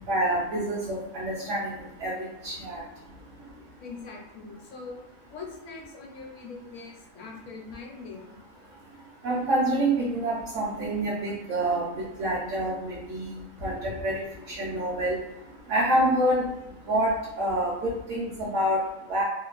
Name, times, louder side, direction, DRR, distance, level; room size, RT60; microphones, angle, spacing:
voice 1, 0.1-1.7 2.0-2.8 9.2-11.8 12.2-14.2 14.5-15.2 15.7-16.5 16.9-18.8 19.1-19.2, right 1 dB, 70° right, -7 dB, 1.0 m, -27 dB
voice 2, 3.8-5.0 5.3-8.4, left 4 dB, 70° left, 0 dB, 0.9 m, -42 dB
2.9 x 2.1 x 2.4 m, 0.93 s
omnidirectional pair, 1.4 m